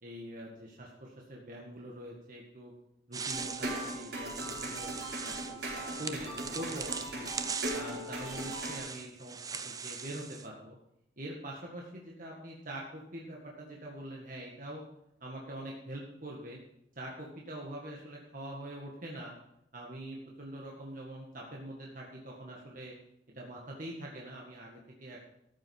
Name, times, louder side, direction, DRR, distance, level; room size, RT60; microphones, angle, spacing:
voice 1, 0.0-2.7 3.1-5.0 5.2-7.3 7.7-9.4 9.6-10.8 11.2-14.8 15.2-16.6 17.0-19.3 19.7-22.9 23.3-25.2, right 1 dB, 50° right, -2 dB, 1.9 m, -44 dB
sound 1, 3.1-10.5, right 5 dB, 20° right, 0.6 m, -41 dB
sound 2, 3.3-8.8, right 1 dB, 75° right, 5.3 m, -39 dB
14.0 x 7.7 x 5.5 m, 0.78 s
head